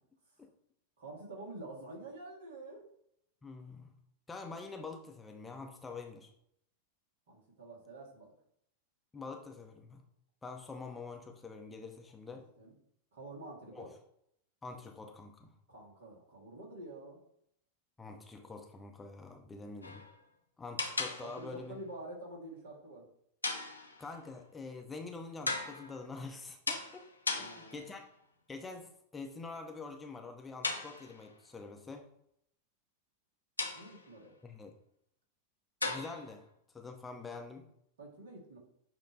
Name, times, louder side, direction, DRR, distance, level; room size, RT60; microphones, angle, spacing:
voice 1, 1.0-2.8 7.3-8.3 12.3-12.7 13.1-13.9 15.7-17.2 21.2-23.1 27.3-27.8 33.8-34.3 38.0-38.6, right 2 dB, 65° right, -1 dB, 2.3 m, -48 dB
voice 2, 3.4-3.9 4.3-6.3 9.1-10.0 10.4-12.5 13.7-13.9 14.6-15.5 18.0-20.0 20.6-21.8 24.0-27.1 27.4-28.0 28.5-32.1 34.4-34.7 35.8-36.5 36.7-37.7, left 4 dB, 15° left, 3 dB, 0.8 m, -46 dB
sound 1, 19.8-20.2 20.8-21.6 23.4-24.2 25.5-26.1 26.7-28.0 30.6-31.4 33.6-34.2 35.8-36.4, left 3 dB, 80° left, 0.9 m, -38 dB
8.4 x 3.1 x 4.1 m, 0.73 s
figure-of-eight pair, 90°, 0 cm